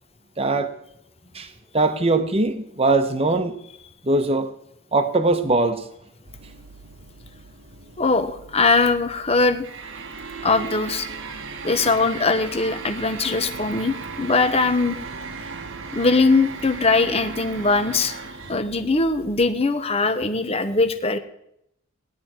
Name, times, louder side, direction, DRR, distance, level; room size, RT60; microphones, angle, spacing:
voice 1, 0.4-0.7 1.3-3.6 4.0-4.5 4.9-5.8, right 2 dB, 30° right, 8 dB, 1.0 m, -21 dB
sound 1, 6.3-19.5, right 4 dB, 60° right, 1.2 m, -37 dB
voice 2, 8.0-9.6 10.4-11.1 11.6-15.0 15.9-18.2 18.5-21.2, left 3 dB, 30° left, 9 dB, 0.9 m, -21 dB
17.5 x 10.5 x 4.4 m, 0.76 s
head